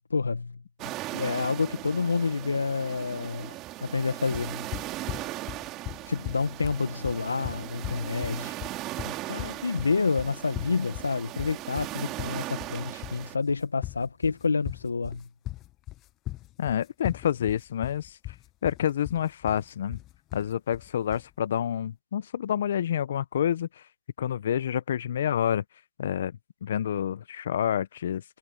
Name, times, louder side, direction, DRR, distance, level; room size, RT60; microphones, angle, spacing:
voice 1, 0.1-0.6 1.1-4.7 6.1-8.6 9.0-15.3, left 4 dB, 85° left, 1.5 m, -29 dB
sound 1, 0.8-13.4, right 17 dB, 25° right, 2.7 m, -38 dB
sound 2, 4.3-21.3, left 17 dB, 25° left, 1.4 m, -39 dB
voice 2, 16.6-18.2 18.6-20.0 20.3-23.7 24.2-25.6 26.0-26.3 26.6-28.2, left 9 dB, 55° left, 1.1 m, -28 dB
hypercardioid pair, 135°, 0 cm